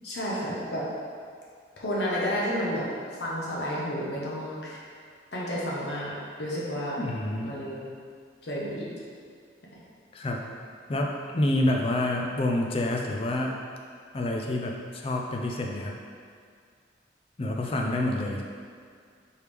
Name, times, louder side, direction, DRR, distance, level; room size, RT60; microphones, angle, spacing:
voice 1, 0.0-0.9 1.8-2.9 3.2-4.8 5.3-7.0 7.4-7.8 8.4-8.9, equal, 60° left, -6 dB, 0.8 m, -31 dB
voice 2, 7.0-7.5 10.1-10.4 10.9-13.6 14.1-16.0 17.4-18.4, left 1 dB, 30° left, 1 dB, 0.4 m, -28 dB
4.5 x 3.3 x 3.4 m, 2.1 s
head